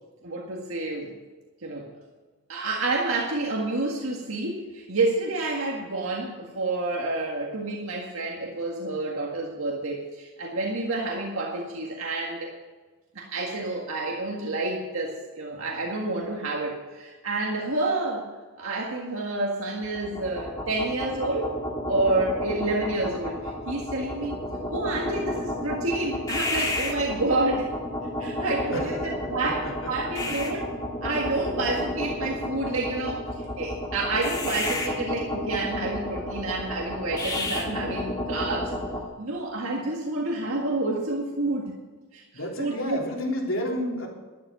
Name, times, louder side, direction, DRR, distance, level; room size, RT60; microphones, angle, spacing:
voice 1, 0.2-1.1 1.6-1.9 2.5-12.5 13.2-18.3 18.6-21.5 21.9-24.4 24.7-27.7 28.2-30.7 31.0-38.7 39.2-41.7 42.1-42.2 42.6-43.1, right 2 dB, 75° right, -1 dB, 1.8 m, -29 dB
sound 1, 19.8-39.1, left 1 dB, 15° left, 1.9 m, -31 dB
voice 2, 29.6-30.3 42.3-44.1, left 1 dB, 65° left, -1 dB, 3.3 m, -31 dB
12.0 x 11.0 x 6.4 m, 1.3 s
head